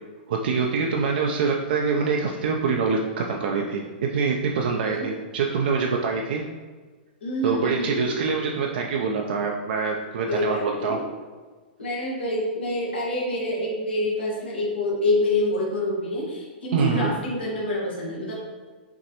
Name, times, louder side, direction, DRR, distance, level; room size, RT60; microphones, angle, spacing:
voice 1, 0.3-6.4 7.4-11.0 16.7-17.1, right 5 dB, 65° right, 1 dB, 0.5 m, -25 dB
voice 2, 7.2-8.0 10.3-11.0 11.8-18.3, left 1 dB, 85° left, -4 dB, 1.4 m, -26 dB
5.9 x 3.1 x 2.9 m, 1.4 s
hypercardioid pair, 140°, 6 cm